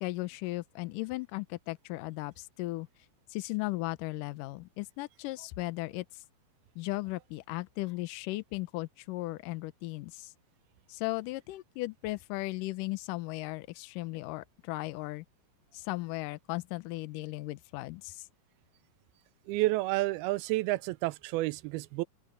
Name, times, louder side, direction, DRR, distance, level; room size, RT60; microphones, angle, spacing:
voice 1, 0.0-2.9 3.3-6.2 6.8-10.3 10.9-15.3 15.7-18.3, left 20 dB, 75° left, 2.1 m, -36 dB
voice 2, 19.5-22.0, right 19 dB, 80° right, 2.4 m, -30 dB
open air
omnidirectional pair, 4.6 m